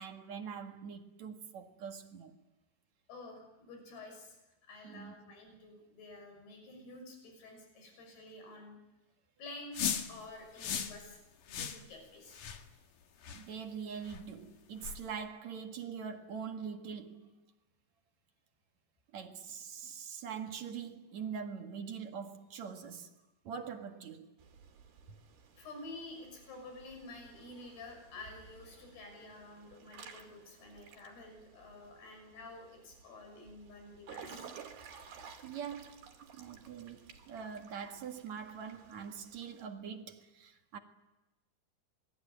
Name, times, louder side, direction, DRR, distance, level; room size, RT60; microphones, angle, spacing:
voice 1, 0.0-2.4 4.8-5.2 13.3-17.4 19.1-23.1 23.4-24.3 25.1-25.2 35.4-40.8, right 7 dB, 55° right, 2.8 m, -43 dB
voice 2, 3.1-4.4 4.7-8.8 9.4-11.2 11.5-12.4 25.6-34.5, left 2 dB, 85° left, 8.1 m, -50 dB
sound 1, 9.7-10.1 10.6-11.0 11.5-11.8 12.3-12.6 13.2-13.4 14.1-14.2 14.8-15.0, left 8 dB, 60° left, 3.1 m, -36 dB
Water / Splash splatter / Drip, 24.4-39.7, right 6 dB, 75° right, 4.7 m, -55 dB
27.5 x 21.5 x 9.2 m
omnidirectional pair, 4.5 m